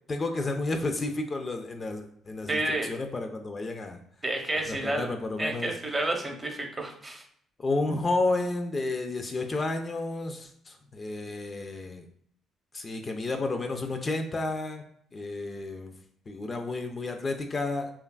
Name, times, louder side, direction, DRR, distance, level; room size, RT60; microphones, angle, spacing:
voice 1, 0.1-4.0 4.7-5.7 7.6-12.0 12.7-14.8 15.1-15.9 16.3-17.9, left 2 dB, 35° left, 5 dB, 0.3 m, -31 dB
voice 2, 2.5-2.9 4.2-5.1 5.4-7.2, right 1 dB, 25° right, 2 dB, 0.7 m, -30 dB
3.1 x 2.3 x 2.3 m, 0.66 s
supercardioid pair, 60°, 0 cm